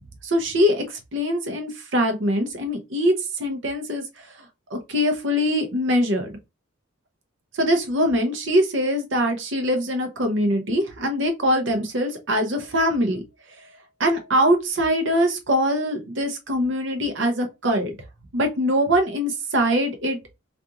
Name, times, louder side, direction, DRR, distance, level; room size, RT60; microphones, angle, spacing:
voice 1, 0.2-4.0 4.7-6.3 7.5-13.2 14.0-17.9 18.3-20.2, equal, 65° right, 0.7 m, -23 dB
2.5 x 2.4 x 2.8 m
head